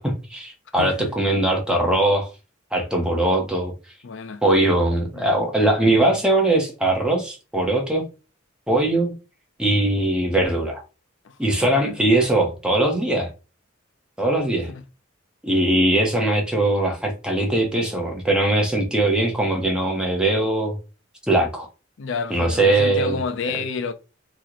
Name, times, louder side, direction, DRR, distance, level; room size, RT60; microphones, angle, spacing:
voice 1, 0.0-2.3 2.7-3.7 4.4-8.0 8.7-9.1 9.6-10.8 11.4-13.3 14.2-14.7 15.4-20.7 21.3-21.7 22.3-23.2, right 1 dB, 5° right, 0.6 m, -20 dB
voice 2, 0.8-1.1 4.0-4.4 5.1-5.2 11.2-11.4 11.7-12.0 14.7-14.8 22.0-23.9, left 4 dB, 65° left, 0.4 m, -30 dB
2.9 x 2.1 x 3.7 m
head